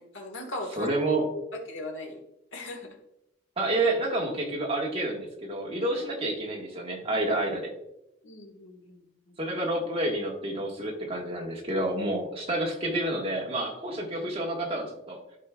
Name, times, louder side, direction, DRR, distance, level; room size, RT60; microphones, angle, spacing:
voice 1, 0.0-0.9 1.3-1.4 1.7-2.2 2.5-3.0 8.2-9.4, left 1 dB, 85° left, 3 dB, 1.4 m, -39 dB
voice 2, 0.8-1.3 3.6-7.7 9.4-15.2, right 1 dB, 30° right, -1 dB, 1.4 m, -29 dB
12.5 x 4.7 x 2.2 m, 0.86 s
head